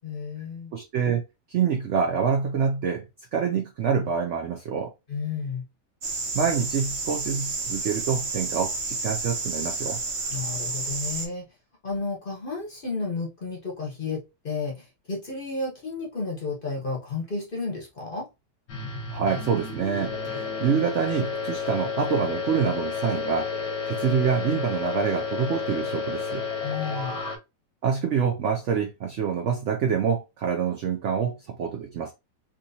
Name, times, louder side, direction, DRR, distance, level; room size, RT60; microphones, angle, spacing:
voice 1, 0.0-0.7 5.1-5.7 10.3-11.5 11.8-18.3 26.6-27.2, left 4 dB, 45° left, 0.8 m, -32 dB
voice 2, 0.7-1.2 1.5-3.0 3.3-4.9 6.3-10.0 19.1-23.5 23.8-26.5 27.8-32.1, right 6 dB, 80° right, 0.6 m, -26 dB
sound 1, 6.0-11.3, right 3 dB, 55° right, 1.1 m, -31 dB
sound 2, 18.7-27.4, left 5 dB, 80° left, 1.5 m, -31 dB
3.5 x 2.9 x 2.6 m
omnidirectional pair, 1.8 m